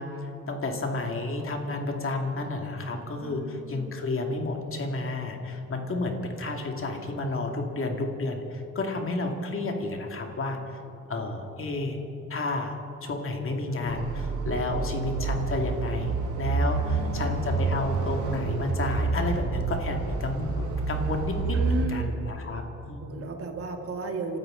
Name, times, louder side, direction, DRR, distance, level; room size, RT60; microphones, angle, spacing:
voice 1, 0.0-10.8 11.1-12.0 12.3-23.1, left 2 dB, 45° left, 3 dB, 2.3 m, -31 dB
voice 2, 3.2-3.9 16.7-17.3 21.5-22.6 23.0-24.4, right 4 dB, 50° right, 4 dB, 2.0 m, -35 dB
sound 1, 13.8-21.9, right 4 dB, 75° right, 1.7 m, -28 dB
27.0 x 13.0 x 3.8 m, 3.0 s
cardioid pair, 90°, 30 cm